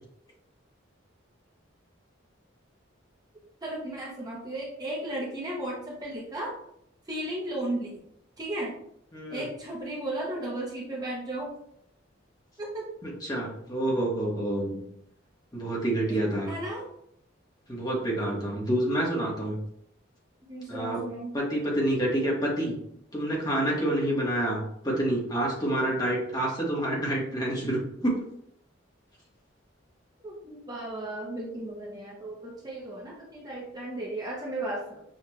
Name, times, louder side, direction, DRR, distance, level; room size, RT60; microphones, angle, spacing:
voice 1, 3.6-6.5 7.1-7.9 8.4-8.7 9.3-11.5 12.6-12.9 16.1-16.2 16.5-16.8 20.5-21.3 30.2-35.0, right 1 dB, 20° right, -4 dB, 0.8 m, -35 dB
voice 2, 9.1-9.5 13.0-14.8 15.5-16.5 17.7-19.6 20.7-21.0 21.3-22.7 23.1-28.2, right 1 dB, 20° left, -3 dB, 1.0 m, -28 dB
6.5 x 2.3 x 3.0 m, 0.74 s
head